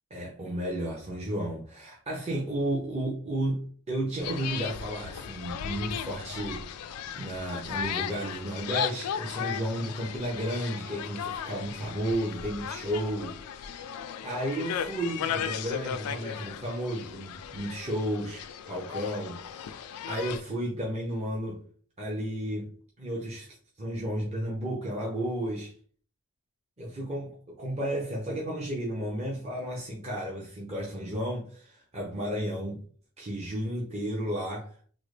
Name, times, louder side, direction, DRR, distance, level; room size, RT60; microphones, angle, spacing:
voice 1, 0.1-13.9 14.2-21.6 22.0-22.7 23.0-25.7 26.8-32.8 33.2-34.8, right 1 dB, 30° right, 0.7 m, -33 dB
sound 1, 4.2-20.4, left 8 dB, 80° left, 0.3 m, -36 dB
3.7 x 2.1 x 3.2 m
head